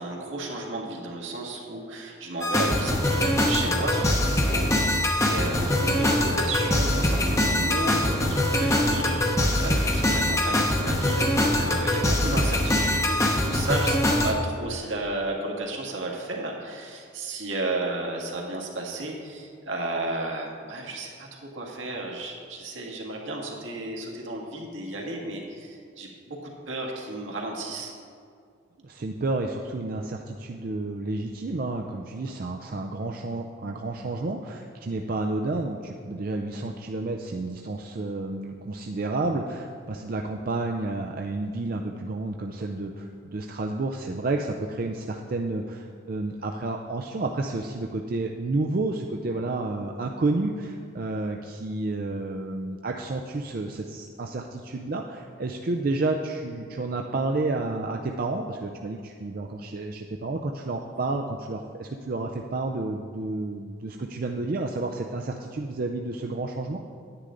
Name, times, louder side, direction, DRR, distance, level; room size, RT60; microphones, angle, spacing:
voice 1, 0.0-26.4 26.7-27.9, right 2 dB, 80° right, -1 dB, 1.8 m, -33 dB
sound 1, 2.4-14.3, left 1 dB, 15° left, 0.8 m, -23 dB
voice 2, 28.8-66.8, right 2 dB, 45° right, 2 dB, 0.4 m, -30 dB
10.0 x 9.8 x 3.8 m, 2.3 s
head